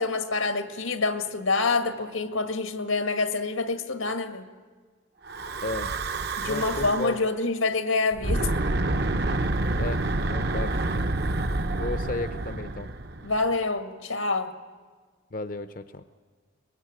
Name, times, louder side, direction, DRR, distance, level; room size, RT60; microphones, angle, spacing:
voice 1, 0.0-4.5 6.4-8.5 13.2-14.5, left 3 dB, 90° left, 9 dB, 1.8 m, -27 dB
Breathing / Wind, 5.3-7.2 8.1-13.5, right 2 dB, 50° right, 0.9 m, -28 dB
voice 2, 5.6-5.9 6.4-7.2 9.8-10.8 11.8-12.9 15.3-16.0, left 2 dB, 45° left, 11 dB, 0.7 m, -33 dB
23.5 x 21.0 x 8.9 m, 1.5 s
head